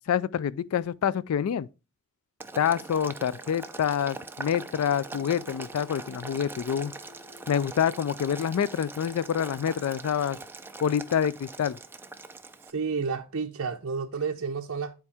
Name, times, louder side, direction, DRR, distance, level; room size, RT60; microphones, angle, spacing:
voice 1, 0.1-1.7 2.6-6.9 7.5-10.4 10.8-11.8, left 8 dB, 70° left, 0.3 m, -27 dB
Boiling, 2.4-12.7, right 3 dB, 10° right, 0.4 m, -42 dB
sound 1, 3.2-10.6, left 2 dB, 40° left, 2.9 m, -56 dB
voice 2, 12.7-14.9, right 5 dB, 65° right, 0.6 m, -31 dB
9.8 x 4.6 x 3.4 m
head